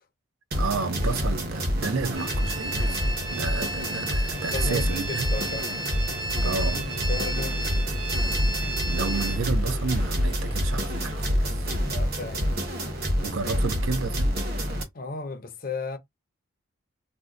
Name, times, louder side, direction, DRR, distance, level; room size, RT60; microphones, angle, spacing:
sound 1, 0.5-14.8, equal, 45° right, 1.0 m, -27 dB
voice 1, 0.6-3.0 3.3-5.3 6.4-6.9 8.6-11.7 13.2-14.3, right 4 dB, 75° right, 0.5 m, -31 dB
sound 2, 2.1-11.2, left 3 dB, 70° left, 0.8 m, -45 dB
sound 3, 2.2-9.4, right 1 dB, 20° right, 0.4 m, -34 dB
voice 2, 4.5-5.7 6.3-7.8 11.8-12.6 14.9-16.0, left 3 dB, 45° left, 0.5 m, -35 dB
2.7 x 2.1 x 3.6 m
head